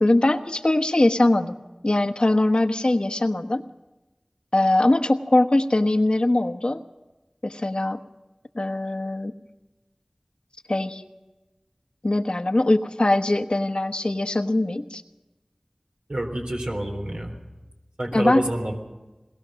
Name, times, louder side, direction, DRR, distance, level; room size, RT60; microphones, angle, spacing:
voice 1, 0.0-1.6 1.8-3.6 4.5-6.8 7.4-8.0 8.5-9.3 10.7-11.0 12.0-15.0 18.1-18.4, left 2 dB, 55° left, 6 dB, 1.2 m, -21 dB
voice 2, 16.1-17.3 18.0-18.7, right 1 dB, 65° right, 0 dB, 3.7 m, -27 dB
21.5 x 20.0 x 6.4 m, 1.1 s
wide cardioid pair, 40°, 2 cm